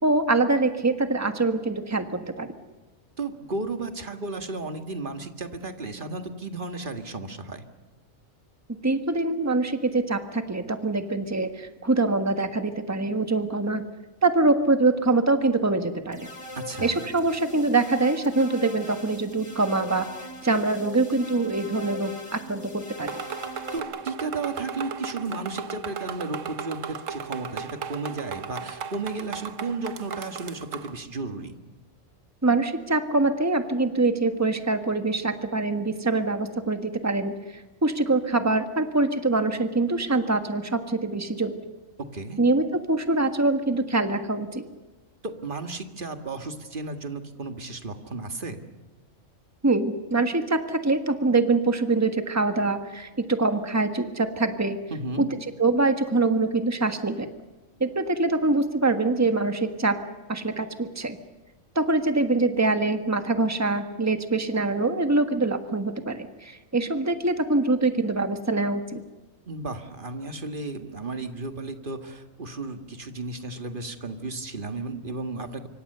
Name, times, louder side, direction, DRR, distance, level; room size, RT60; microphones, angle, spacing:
voice 1, 0.0-2.5 8.7-13.8 14.2-16.3 16.8-20.1 20.4-23.1 32.4-41.6 42.4-44.6 49.6-54.8 55.2-55.3 55.6-57.3 57.8-60.0 60.3-61.2 61.7-69.0, right 3 dB, 10° right, 7 dB, 1.5 m, -24 dB
voice 2, 3.2-7.6 16.6-17.0 23.7-31.5 42.1-42.4 45.2-48.6 54.9-55.3 69.5-75.7, right 3 dB, 40° right, 6 dB, 2.0 m, -34 dB
sound 1, 16.1-23.8, left 1 dB, 20° left, 2.6 m, -41 dB
sound 2, 23.1-31.0, right 6 dB, 70° right, 1.4 m, -36 dB
26.5 x 24.5 x 6.8 m, 1.2 s
omnidirectional pair, 1.4 m